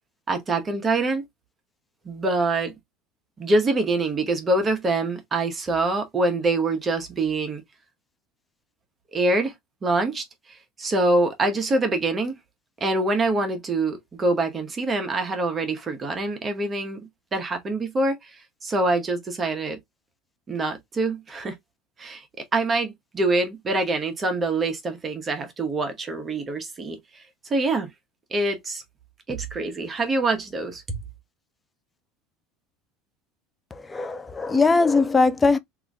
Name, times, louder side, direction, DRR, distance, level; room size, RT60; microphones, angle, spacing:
voice 1, 0.3-1.2 2.1-2.7 3.4-7.6 9.1-9.5 9.8-12.3 12.8-17.0 17.3-18.3 18.6-19.8 20.5-21.5 22.0-22.2 22.5-27.2 27.5-27.9 28.3-28.8 29.3-31.0, right 2 dB, 25° right, 0.9 m, -25 dB
voice 2, 33.7-35.6, left 3 dB, 15° left, 0.5 m, -20 dB
2.9 x 2.6 x 3.5 m
supercardioid pair, 120°, 0 cm